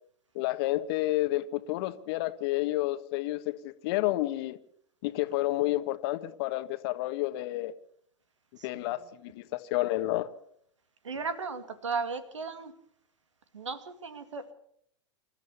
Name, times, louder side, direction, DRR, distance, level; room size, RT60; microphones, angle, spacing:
voice 1, 0.3-4.6 5.0-7.7 8.6-10.3, left 17 dB, 55° left, 1.4 m, -30 dB
voice 2, 8.6-9.0 11.0-12.7 13.5-14.5, right 4 dB, 80° right, 2.3 m, -36 dB
27.0 x 13.5 x 7.0 m
figure-of-eight pair, 90°, 15 cm